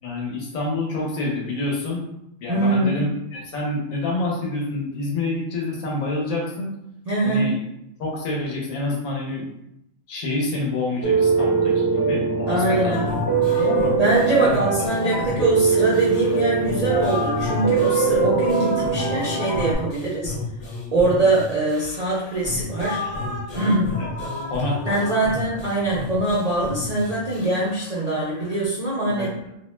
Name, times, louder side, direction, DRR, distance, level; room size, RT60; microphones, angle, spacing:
voice 1, 0.0-2.1 2.4-6.7 7.2-7.6 8.0-9.5 10.1-13.9 14.4-14.6 15.0-15.2 24.0-25.1 29.1-29.5, left 2 dB, 85° left, -2 dB, 1.1 m, -28 dB
voice 2, 2.5-3.0 7.1-7.5 12.5-13.1 13.5-13.6 14.0-20.4 20.9-23.0 23.5-23.9 24.9-29.3, right 2 dB, 65° right, -7 dB, 0.4 m, -23 dB
Piano, 11.0-19.7, right 4 dB, 35° left, 0.4 m, -22 dB
sound 1, 12.9-28.6, left 3 dB, 65° left, 1.0 m, -33 dB
2.5 x 2.1 x 3.0 m, 0.81 s
omnidirectional pair, 1.4 m